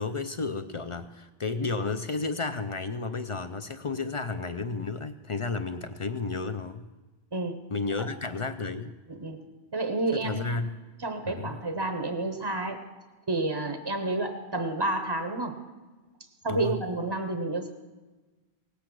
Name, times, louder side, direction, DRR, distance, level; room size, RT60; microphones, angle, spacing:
voice 1, 0.0-6.9 7.7-9.0 10.1-10.8 11.3-11.5 16.5-16.8, left 3 dB, 45° left, 8 dB, 0.4 m, -32 dB
voice 2, 7.3-7.6 9.1-9.4 9.7-10.6 11.0-12.9 13.3-15.6 16.4-17.7, right 2 dB, 30° right, 6 dB, 0.7 m, -30 dB
18.0 x 8.3 x 6.0 m, 1.2 s
omnidirectional pair, 1.1 m